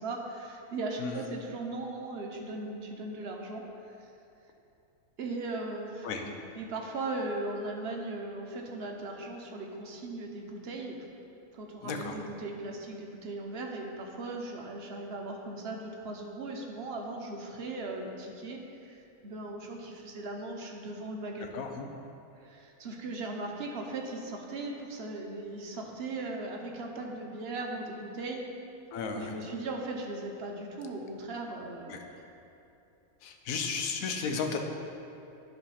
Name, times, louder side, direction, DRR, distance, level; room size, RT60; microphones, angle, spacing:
voice 1, 0.0-4.1 5.2-6.1 6.5-11.1 11.5-21.6 22.4-28.5 29.1-32.3, right 2 dB, 50° right, 1 dB, 0.8 m, -38 dB
voice 2, 11.8-12.2 21.5-21.9 28.9-29.3 31.9-32.0 33.2-34.6, left 5 dB, 70° left, 4 dB, 1.1 m, -34 dB
9.9 x 3.4 x 5.6 m, 2.7 s
omnidirectional pair, 1.6 m